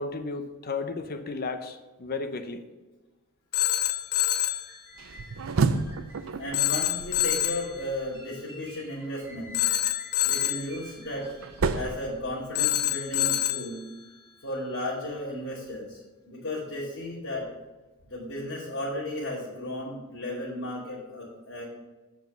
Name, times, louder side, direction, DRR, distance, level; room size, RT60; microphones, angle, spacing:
voice 1, 0.0-2.6, left 3 dB, 45° left, 8 dB, 0.7 m, -34 dB
Telephone, 3.5-4.7 6.5-7.7 9.5-10.7 12.6-13.7, left 12 dB, 85° left, 0.6 m, -26 dB
sound 1, 4.1-11.9, right 1 dB, 15° right, 1.0 m, -51 dB
sound 2, 5.0-8.1 10.3-12.9, right 4 dB, 65° right, 0.5 m, -31 dB
voice 2, 6.4-9.6 10.2-11.3 11.7-13.8 14.4-16.0 16.3-17.5 18.0-21.6, left 1 dB, 65° left, -10 dB, 2.7 m, -34 dB
7.9 x 5.2 x 5.3 m, 1.2 s
head